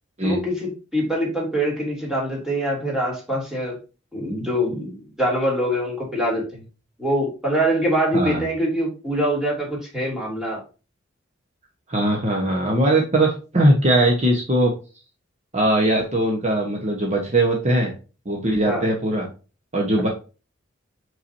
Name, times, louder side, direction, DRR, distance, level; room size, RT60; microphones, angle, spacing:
voice 1, 0.2-3.7 4.1-6.6 7.0-10.6 18.6-18.8, equal, 5° right, -3 dB, 3.2 m, -24 dB
voice 2, 11.9-14.7 15.5-17.9 18.2-19.3 19.7-20.1, right 1 dB, 35° right, 0 dB, 1.3 m, -20 dB
6.1 x 5.7 x 2.8 m, 0.33 s
head